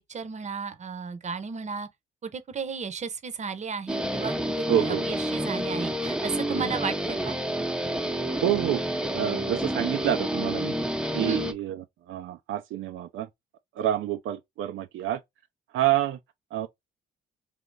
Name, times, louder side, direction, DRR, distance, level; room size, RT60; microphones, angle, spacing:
voice 1, 0.1-1.9 2.2-7.4 11.1-11.4, right 5 dB, 35° right, 0.8 m, -34 dB
Guitar, 3.9-11.5, equal, 5° right, 0.6 m, -29 dB
voice 2, 4.7-5.0 6.5-6.7 8.4-8.8 9.1-10.7 11.1-11.8 12.1-13.3 13.8-15.2 15.7-16.2 16.5-16.7, right 12 dB, 80° right, 0.5 m, -27 dB
3.5 x 2.8 x 3.9 m
cardioid pair, 90°, 20 cm